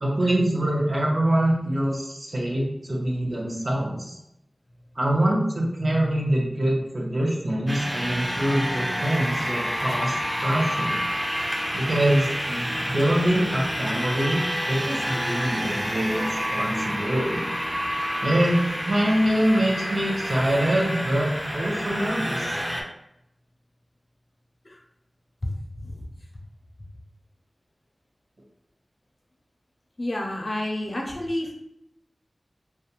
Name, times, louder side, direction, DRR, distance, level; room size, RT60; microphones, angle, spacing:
voice 1, 0.0-4.2 5.0-10.1 10.4-11.0 11.7-17.4 18.2-18.6 18.8-22.5, right 1 dB, 50° right, -3 dB, 0.7 m, -24 dB
sound 1, 7.7-22.8, equal, 5° right, 0.4 m, -29 dB
voice 2, 30.0-31.5, left 1 dB, 50° left, 0 dB, 0.4 m, -29 dB
2.4 x 2.1 x 2.8 m, 0.81 s
wide cardioid pair, 65°, 0 cm